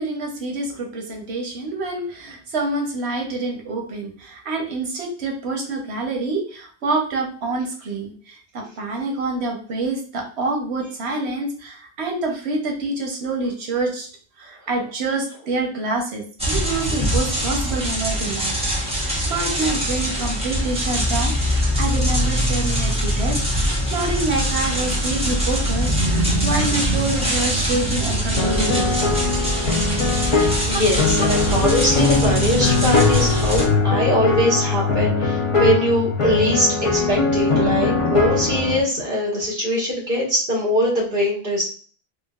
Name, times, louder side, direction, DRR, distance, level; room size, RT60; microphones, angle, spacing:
voice 1, 0.0-14.1 14.4-28.9, right 2 dB, 85° right, 1 dB, 1.1 m, -27 dB
sound 1, 16.4-33.6, equal, 5° right, 0.8 m, -22 dB
sound 2, 28.4-38.8, left 4 dB, 35° left, 0.6 m, -21 dB
voice 2, 30.2-41.6, equal, 55° right, -4 dB, 1.6 m, -22 dB
3.7 x 2.5 x 2.3 m, 0.41 s
omnidirectional pair, 1.1 m